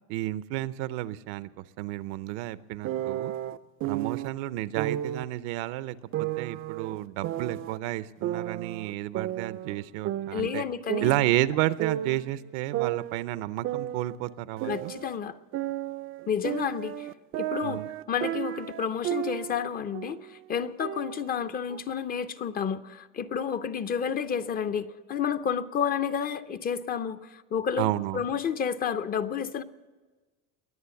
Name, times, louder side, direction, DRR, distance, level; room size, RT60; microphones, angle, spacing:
voice 1, 0.1-3.3 3.8-10.6 11.0-14.9 17.6-17.9 27.8-28.2, right 15 dB, 80° right, 15 dB, 0.7 m, -31 dB
sound 1, 2.8-4.3 4.8-5.3 6.1-7.8 8.2-9.8 10.0-12.3 12.7-15.2 15.5-19.6 19.9-20.3 20.8-21.8, right 13 dB, 40° right, 0.4 m, -33 dB
voice 2, 10.3-11.1 14.6-15.4 16.3-17.1 17.4-17.8 18.1-29.6, left 7 dB, 25° left, 11 dB, 0.5 m, -30 dB
22.0 x 8.4 x 7.0 m, 1.3 s
cardioid pair, 145°, 34 cm